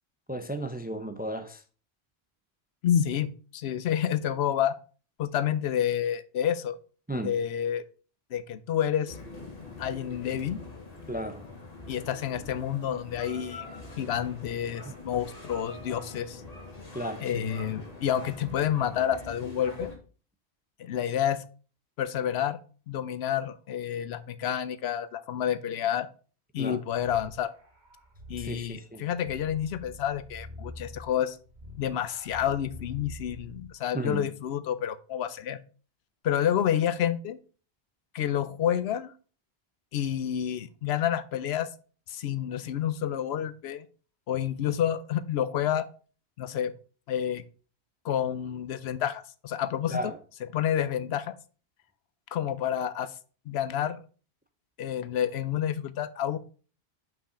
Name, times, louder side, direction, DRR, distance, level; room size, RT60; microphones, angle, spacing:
voice 1, 0.3-1.6 7.1-7.3 11.1-11.4 14.8-14.9 16.9-17.4 26.6-26.8 28.4-29.0 33.9-34.3 49.9-50.2, right 1 dB, 10° right, 0.4 m, -34 dB
voice 2, 2.8-4.7 5.2-6.8 7.1-7.8 8.3-9.2 9.8-10.6 11.9-13.7 14.0-16.4 17.2-19.9 20.8-21.4 22.0-22.6 22.9-26.1 26.5-27.5 28.3-31.4 31.8-35.6 36.2-37.4 38.1-39.1 39.9-41.7 42.1-43.8 44.3-45.9 46.4-46.7 47.1-47.4 48.0-50.1 50.5-51.3 52.3-53.1 53.5-54.0 54.8-56.4, left 10 dB, 80° left, 0.9 m, -29 dB
sound 1, 9.1-20.0, left 2 dB, 40° left, 1.8 m, -44 dB
sound 2, 26.9-33.8, left 1 dB, 45° right, 1.4 m, -46 dB
5.5 x 5.4 x 4.9 m
omnidirectional pair, 1.1 m